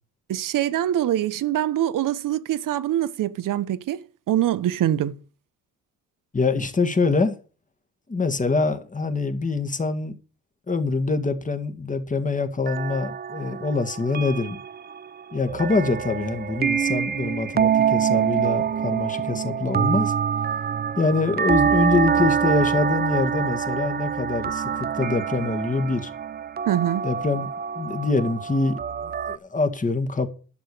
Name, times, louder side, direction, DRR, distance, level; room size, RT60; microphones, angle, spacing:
voice 1, 0.3-5.2 26.7-27.1, right 12 dB, 65° right, 1.0 m, -24 dB
voice 2, 6.3-7.4 8.1-10.1 10.7-14.6 15.3-20.1 21.0-26.1 27.0-27.5 27.8-30.3, left 3 dB, 20° left, 1.9 m, -25 dB
sound 1, 12.7-29.4, right 7 dB, 25° right, 0.6 m, -25 dB
11.5 x 6.4 x 6.7 m
cardioid pair, 90°, 35 cm